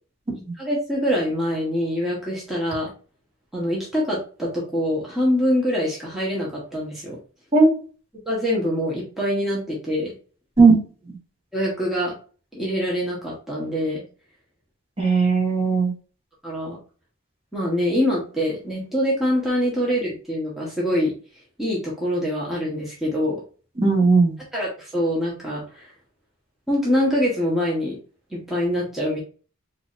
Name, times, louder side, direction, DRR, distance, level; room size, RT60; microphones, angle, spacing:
voice 1, 0.6-2.9 3.5-7.2 8.3-10.1 11.5-12.1 12.5-14.0 16.4-16.8 17.5-21.1 21.6-23.4 24.5-25.9 26.7-28.0 28.3-29.2, equal, ahead, -6 dB, 1.0 m, -24 dB
voice 2, 15.0-15.9 23.8-24.4, right 4 dB, 30° right, -2 dB, 1.3 m, -16 dB
4.7 x 2.5 x 2.4 m, 0.38 s
head